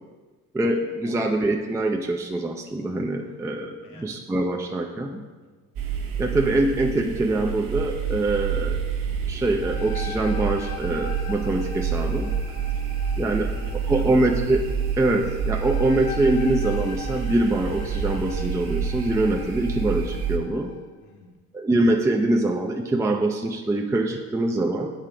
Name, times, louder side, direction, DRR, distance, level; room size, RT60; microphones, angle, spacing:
voice 1, 0.5-5.2 6.2-8.8 9.3-12.3 13.2-13.5 13.9-14.6 15.0-20.7 21.5-24.9, right 2 dB, 10° right, 2 dB, 0.5 m, -24 dB
sound 1, 5.8-20.4, right 7 dB, 65° right, 0.9 m, -28 dB
sound 2, 9.4-20.9, left 8 dB, 85° left, 0.5 m, -42 dB
voice 2, 12.5-12.8 13.3-14.2 21.0-21.4, left 4 dB, 70° left, 1 dB, 1.3 m, -46 dB
7.7 x 3.2 x 4.8 m, 1.3 s
hypercardioid pair, 60°, 38 cm